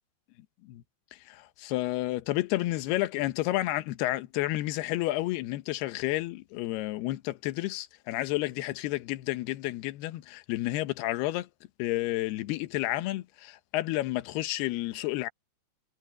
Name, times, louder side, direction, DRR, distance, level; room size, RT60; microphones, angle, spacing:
voice 1, 1.3-11.5 11.8-15.3, left 17 dB, 75° left, 2.9 m, -31 dB
omnidirectional pair, 4.9 m